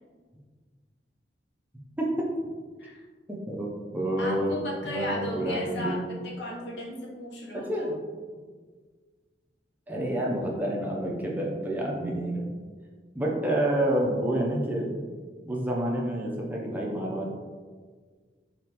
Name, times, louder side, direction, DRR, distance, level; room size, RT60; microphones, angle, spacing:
voice 1, 3.3-4.6 4.8-6.1 7.7-8.0 9.9-12.5 13.1-14.9 15.5-17.3, right 1 dB, 10° right, -3 dB, 0.5 m, -28 dB
voice 2, 4.2-7.9, left 1 dB, 70° left, -2 dB, 0.9 m, -36 dB
4.0 x 3.5 x 2.9 m, 1.5 s
head